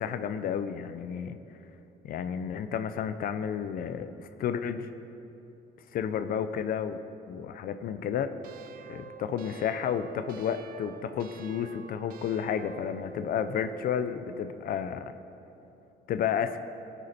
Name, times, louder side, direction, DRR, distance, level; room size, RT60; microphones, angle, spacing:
voice 1, 0.0-1.4 2.0-4.9 5.9-7.0 7.3-8.3 8.9-15.1 16.1-16.6, left 8 dB, 60° left, 10 dB, 0.6 m, -31 dB
sound 1, 8.4-14.1, right 8 dB, 60° right, 0.6 m, -46 dB
17.0 x 8.2 x 4.3 m, 2.8 s
cardioid pair, 110°, 17 cm